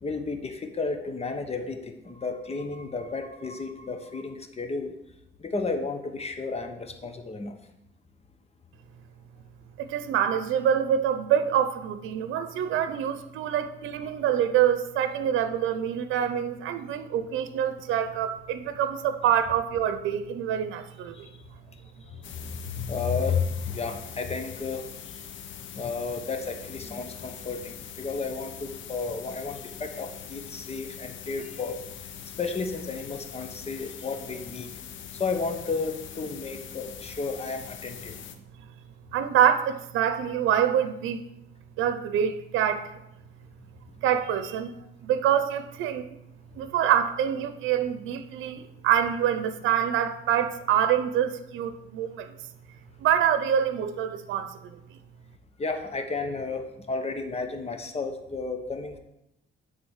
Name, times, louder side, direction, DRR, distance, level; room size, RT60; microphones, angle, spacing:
voice 1, 0.0-4.9 5.4-7.5 22.7-24.9 25.8-31.8 32.4-34.7 35.2-38.1 55.6-59.0, left 4 dB, 30° left, 6 dB, 1.3 m, -32 dB
voice 2, 9.8-21.2 39.1-41.2 41.8-42.9 44.0-44.7 45.0-46.2 46.6-52.3 53.0-54.8, right 9 dB, 85° right, 11 dB, 0.7 m, -26 dB
sound 1, 22.2-38.4, left 9 dB, 75° left, 0.9 m, -42 dB
9.7 x 4.0 x 7.2 m, 0.86 s
cardioid pair, 90°, 20 cm